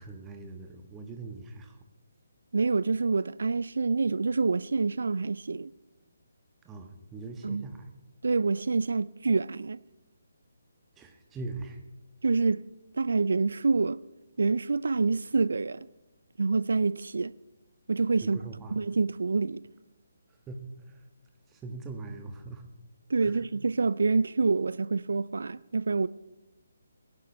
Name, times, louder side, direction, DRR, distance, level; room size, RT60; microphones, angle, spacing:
voice 1, 0.0-1.8 6.6-7.9 11.0-11.8 18.2-18.7 20.5-21.0 21.5-22.6 23.2-23.4, right 3 dB, 15° right, 1.3 m, -41 dB
voice 2, 2.5-5.7 7.4-7.7 8.2-9.8 12.2-12.6 12.9-14.0 14.4-15.9 16.4-17.3 17.9-18.4 18.7-19.6 23.1-26.1, right 4 dB, 65° right, 0.4 m, -27 dB
21.5 x 11.5 x 3.3 m
figure-of-eight pair, 145°, 0 cm